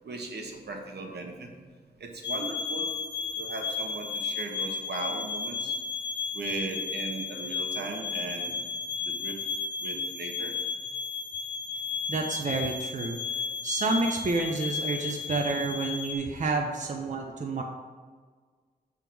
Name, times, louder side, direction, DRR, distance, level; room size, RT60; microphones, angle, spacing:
voice 1, 0.0-1.5 2.0-2.9 3.3-5.7 6.3-8.6 9.0-9.4 9.8-10.5 13.1-13.6, right 3 dB, 85° right, 2 dB, 1.1 m, -38 dB
sound 1, 2.2-16.1, left 5 dB, 25° left, 0.8 m, -33 dB
voice 2, 12.1-13.2 13.6-17.6, right 3 dB, 45° right, 2 dB, 0.7 m, -29 dB
7.3 x 3.6 x 6.1 m, 1.5 s
wide cardioid pair, 110°, 17 cm